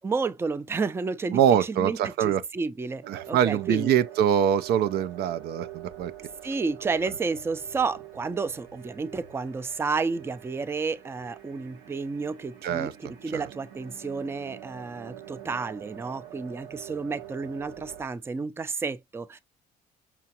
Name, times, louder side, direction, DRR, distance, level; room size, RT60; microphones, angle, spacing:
voice 1, 0.0-3.9 6.4-12.9 13.2-19.4, right 4 dB, 15° right, 0.4 m, -31 dB
voice 2, 1.3-2.4 3.1-6.1 12.6-13.5, right 9 dB, 70° right, 0.5 m, -24 dB
sound 1, 3.0-18.1, right 12 dB, 90° right, 1.3 m, -45 dB
5.7 x 2.4 x 2.8 m
cardioid pair, 110°, 17 cm